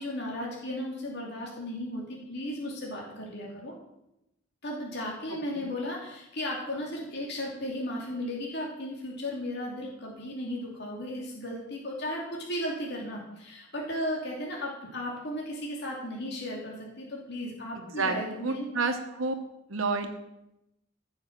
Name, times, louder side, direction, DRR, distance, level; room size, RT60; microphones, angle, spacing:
voice 1, 0.0-3.7 4.6-18.7, left 1 dB, 55° left, -2 dB, 2.8 m, -35 dB
voice 2, 17.8-19.3 19.7-20.1, right 3 dB, 85° right, 5 dB, 1.3 m, -30 dB
14.5 x 6.5 x 7.5 m, 0.87 s
head